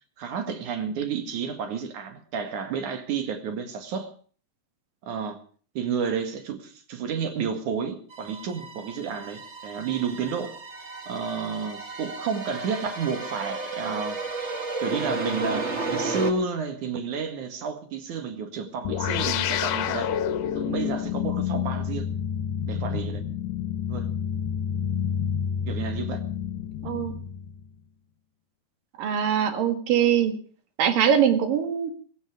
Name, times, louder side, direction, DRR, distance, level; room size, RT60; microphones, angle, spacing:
voice 1, 0.2-4.1 5.0-5.4 5.7-10.5 11.1-20.1 20.5-22.1 22.7-23.2 23.9-24.1 25.7-26.2, right 6 dB, 65° right, 3.2 m, -31 dB
sound 1, 8.1-16.3, right 3 dB, 35° right, 1.1 m, -33 dB
sound 2, 18.8-27.7, left 8 dB, 75° left, 2.4 m, -29 dB
voice 2, 26.8-27.2 29.0-30.3 30.8-31.9, right 8 dB, 80° right, 3.5 m, -22 dB
16.5 x 16.5 x 5.0 m
omnidirectional pair, 3.9 m